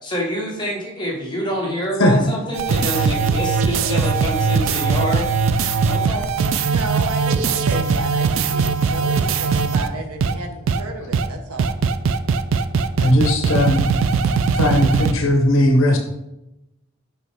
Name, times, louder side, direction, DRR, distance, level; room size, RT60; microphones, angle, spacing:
voice 1, 0.0-5.3 5.9-6.3 13.0-13.4, equal, 20° left, -2 dB, 1.1 m, -26 dB
sound 1, 2.5-9.9 10.2-10.3 10.7-10.8 11.1-11.3 11.6-15.1, right 5 dB, 65° right, 0.3 m, -20 dB
voice 2, 6.7-11.7, right 2 dB, 90° right, 4 dB, 0.8 m, -32 dB
voice 3, 13.0-13.8 14.5-16.0, left 1 dB, 65° left, 3 dB, 0.8 m, -17 dB
6.1 x 5.4 x 3.3 m, 0.92 s
head